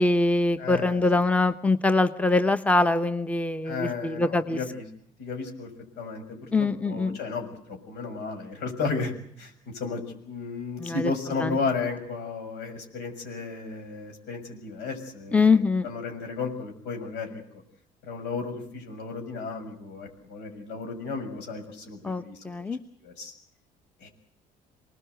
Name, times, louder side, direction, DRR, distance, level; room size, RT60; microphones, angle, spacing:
voice 1, 0.0-4.6 6.5-7.2 10.8-11.1 11.4-11.6 15.3-15.9 22.0-22.8, left 3 dB, 10° left, 11 dB, 1.0 m, -23 dB
voice 2, 0.6-1.0 3.6-4.8 5.2-5.7 6.0-17.4 18.0-22.4 23.0-23.3 24.0-24.1, left 4 dB, 85° left, 4 dB, 6.5 m, -34 dB
25.5 x 19.5 x 8.0 m, 0.66 s
cardioid pair, 110°, 17 cm